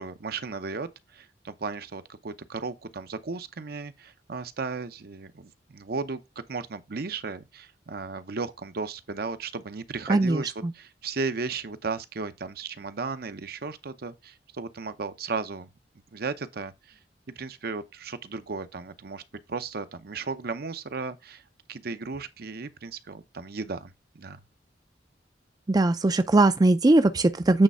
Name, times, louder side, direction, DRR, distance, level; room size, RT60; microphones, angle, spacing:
voice 1, 0.0-6.2 6.5-15.7 16.1-17.0 17.4-19.2 19.5-21.4 21.7-24.4, right 4 dB, 60° right, 0.7 m, -35 dB
voice 2, 10.1-10.7 25.7-27.6, right 2 dB, 20° right, 0.4 m, -20 dB
8.8 x 3.3 x 5.4 m
head